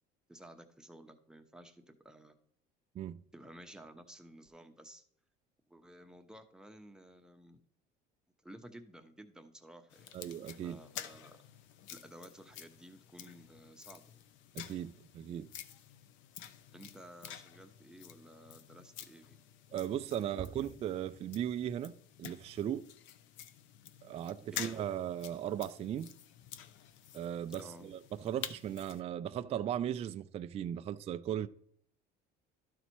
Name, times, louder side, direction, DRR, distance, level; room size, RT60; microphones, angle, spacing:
voice 1, 0.3-2.4 3.3-5.0 5.7-7.6 8.4-10.1 10.6-11.4 11.9-14.1 16.7-19.4 20.3-20.7 24.4-24.9 27.5-27.9, right 1 dB, 5° right, 0.9 m, -54 dB
sound 1, 9.9-29.0, left 10 dB, 65° left, 0.7 m, -50 dB
voice 2, 10.1-10.8 14.5-15.5 19.7-21.9 22.2-22.9 24.0-26.1 27.1-31.5, right 10 dB, 30° right, 0.3 m, -37 dB
12.0 x 4.1 x 4.5 m
cardioid pair, 120°, 21 cm